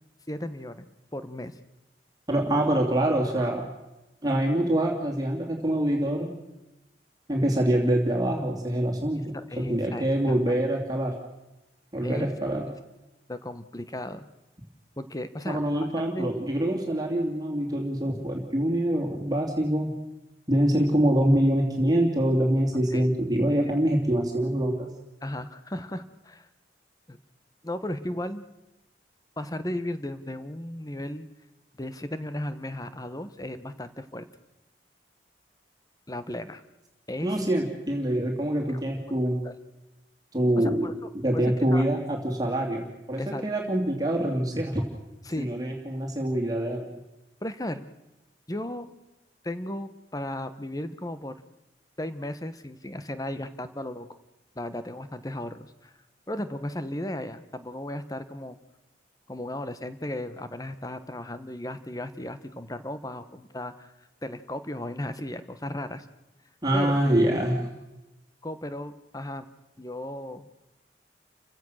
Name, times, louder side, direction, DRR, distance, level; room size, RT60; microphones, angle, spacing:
voice 1, 0.3-0.9 1.1-1.5 9.3-10.6 12.0-12.3 13.3-14.2 15.0-15.6 16.1-16.4 22.9-23.0 23.6-23.7 25.2-26.5 27.1-27.2 27.6-28.4 29.4-31.3 31.8-34.3 36.1-36.6 37.1-37.4 38.7-38.8 39.3-39.5 40.8-40.9 41.3-41.4 41.7-41.9 43.2-43.4 45.2-45.5 47.4-47.8 48.5-48.9 49.4-51.3 52.0-54.1 54.5-55.9 56.3-58.6 59.3-63.9 64.2-66.1 66.7-67.0 68.4-69.5 69.8-70.5, left 1 dB, 20° left, 11 dB, 1.1 m, -35 dB
voice 2, 2.3-3.7 4.2-6.3 7.3-11.2 11.9-12.7 15.5-19.9 20.5-24.9 37.2-39.4 40.3-44.8 45.4-46.9 66.6-67.6, right 1 dB, 20° right, 0 dB, 2.8 m, -25 dB
29.5 x 16.0 x 6.4 m, 0.99 s
head